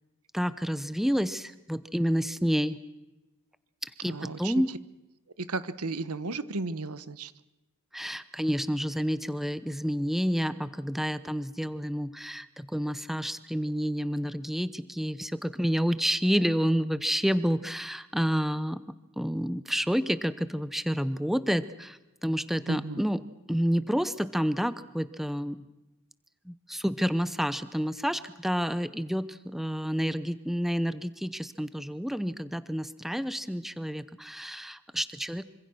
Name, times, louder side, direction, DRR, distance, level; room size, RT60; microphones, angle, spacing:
voice 1, 0.3-2.8 4.0-4.7 7.9-18.8 19.2-23.2 23.5-25.7 26.5-35.4, equal, ahead, 14 dB, 0.8 m, -29 dB
voice 2, 4.0-4.5 5.4-7.3 22.7-23.0, right 3 dB, 80° right, 14 dB, 1.3 m, -34 dB
26.5 x 25.5 x 6.3 m, 1.0 s
head